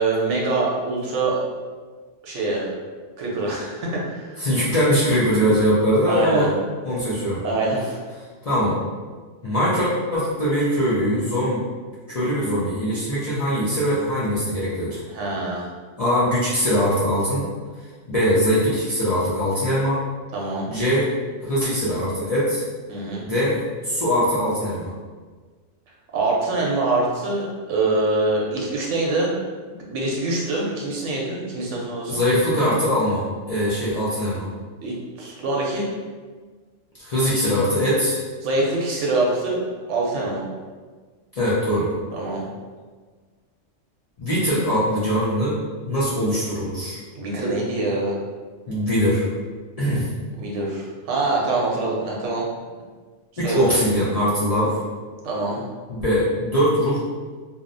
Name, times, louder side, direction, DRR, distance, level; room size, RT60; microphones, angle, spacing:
voice 1, 0.0-1.4 2.2-2.7 3.2-4.4 6.1-6.5 7.4-8.0 15.1-15.7 20.3-20.7 22.9-23.2 26.1-29.3 29.7-32.2 34.8-35.9 38.4-40.4 42.1-42.4 47.2-48.2 50.4-52.4 53.4-53.7 55.2-55.6, right 2 dB, 75° right, -3 dB, 0.9 m, -24 dB
voice 2, 4.4-6.5 6.8-7.4 8.5-8.8 9.4-11.6 12.1-15.0 16.0-17.5 18.1-20.0 20.7-21.1 21.4-22.6 23.2-24.9 32.1-34.5 37.0-38.2 41.3-41.9 44.2-45.6 45.9-47.0 48.7-49.2 49.8-50.1 53.4-54.8 55.9-57.0, equal, 55° left, -10 dB, 0.4 m, -21 dB
2.6 x 2.0 x 2.5 m, 1.5 s
omnidirectional pair, 1.3 m